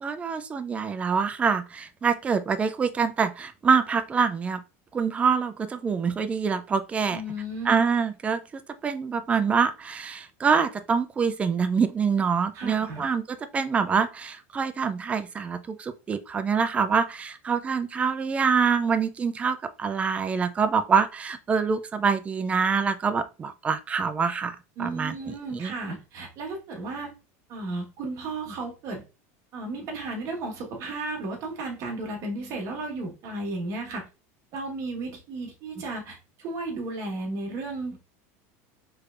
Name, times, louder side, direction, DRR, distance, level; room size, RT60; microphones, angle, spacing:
voice 1, 0.0-4.6 4.9-7.2 7.6-25.7, right 6 dB, 15° right, 0.3 m, -25 dB
voice 2, 7.1-7.8 12.5-13.1 24.8-27.1 27.5-29.0 29.5-34.1 34.5-38.0, right 2 dB, 45° right, 1.3 m, -34 dB
3.3 x 3.2 x 2.4 m
supercardioid pair, 140°, 8 cm